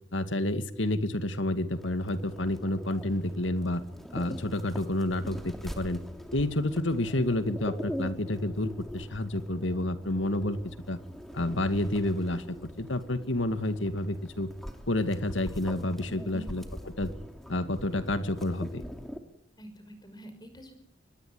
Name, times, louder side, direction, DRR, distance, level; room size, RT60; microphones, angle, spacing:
voice 1, 0.1-3.8 4.1-6.0 6.3-10.6 10.9-11.0 11.3-14.5 14.9-17.1 17.5-18.8, left 1 dB, 80° left, 10 dB, 2.2 m, -29 dB
sound 1, 1.7-19.2, equal, ahead, 2.7 m, -43 dB
voice 2, 16.1-16.5 19.6-20.8, equal, 20° left, 9 dB, 5.8 m, -45 dB
24.0 x 21.0 x 9.8 m, 0.74 s
head